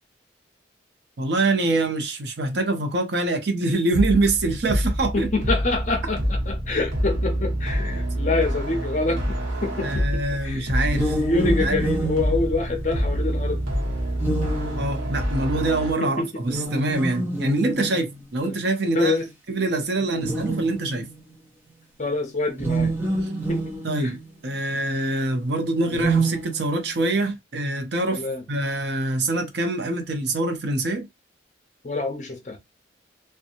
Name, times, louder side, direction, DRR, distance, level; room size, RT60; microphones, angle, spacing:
voice 1, 1.2-5.3 9.8-11.2 11.6-11.8 14.8-19.2 19.5-21.1 23.2-23.3 23.8-28.2 28.5-31.1, right 2 dB, 65° right, 0.6 m, -25 dB
sound 1, 3.9-15.9, equal, 90° right, 1.1 m, -26 dB
voice 2, 5.1-10.7 11.0-13.6 16.0-16.3 18.4-18.6 18.9-19.3 20.1-20.2 22.0-22.9 23.5-24.1 28.1-28.4 31.8-32.6, left 3 dB, 40° left, 0.6 m, -26 dB
sound 2, 10.8-13.3 14.2-15.4 16.4-18.2 19.1-19.2 20.1-21.2 22.5-24.3 25.8-27.1, right 2 dB, 10° right, 0.6 m, -28 dB
2.8 x 2.2 x 2.5 m
head